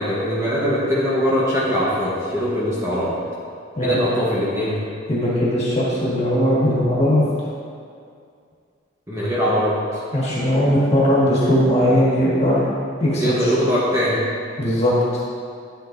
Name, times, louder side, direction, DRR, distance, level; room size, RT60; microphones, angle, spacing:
voice 1, 0.0-3.1 3.8-4.8 9.1-10.0 13.2-14.2, equal, 15° right, -8 dB, 1.2 m, -21 dB
voice 2, 5.1-7.2 10.1-12.7 13.0-13.5 14.6-15.0, equal, 30° left, -7 dB, 1.9 m, -19 dB
9.7 x 7.5 x 2.7 m, 2.3 s
head